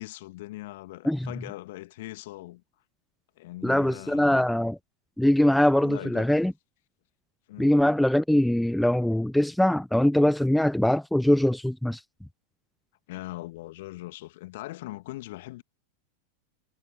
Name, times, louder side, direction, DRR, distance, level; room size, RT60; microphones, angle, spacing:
voice 1, 0.0-2.6 3.4-4.5 5.8-6.3 7.5-7.7 13.1-15.6, left 18 dB, 50° left, 2.3 m, -40 dB
voice 2, 3.6-4.8 5.2-6.5 7.6-12.0, left 1 dB, ahead, 0.9 m, -22 dB
figure-of-eight pair, 90°, 0 cm